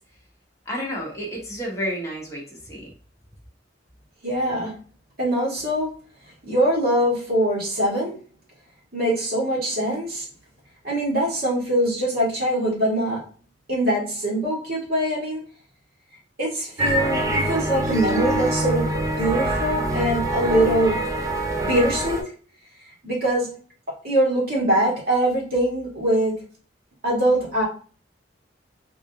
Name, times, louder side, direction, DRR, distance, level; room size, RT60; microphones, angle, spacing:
voice 1, 0.7-2.9, equal, 15° left, -4 dB, 1.1 m, -31 dB
voice 2, 4.2-4.7 5.2-5.9 6.4-8.2 8.9-10.3 10.8-13.2 13.7-15.4 16.4-21.1 21.6-22.3 23.0-23.6 24.0-26.4 27.0-27.6, right 1 dB, 55° right, -4 dB, 1.6 m, -23 dB
sound 1, 16.8-22.2, right 1 dB, 20° right, 0.4 m, -24 dB
3.5 x 2.4 x 2.8 m, 0.40 s
head